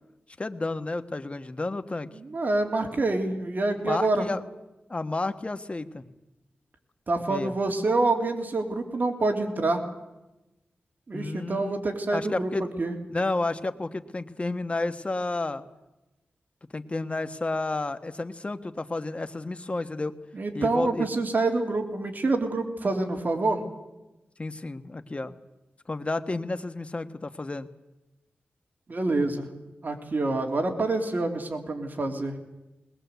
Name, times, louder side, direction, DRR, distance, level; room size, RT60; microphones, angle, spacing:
voice 1, 0.4-2.1 3.8-4.4 4.9-6.0 7.3-7.5 11.1-11.7 12.1-12.6 13.1-15.7 16.7-20.1 20.5-21.1 24.4-25.4 25.9-27.7, left 2 dB, 30° left, 10 dB, 1.3 m, -31 dB
voice 2, 2.2-4.3 7.1-9.8 11.1-12.5 12.8-12.9 20.3-23.6 28.9-29.5 29.8-32.3, right 2 dB, 50° right, 4 dB, 3.0 m, -26 dB
21.0 x 20.0 x 8.2 m, 0.98 s
wide cardioid pair, 85°, 4 cm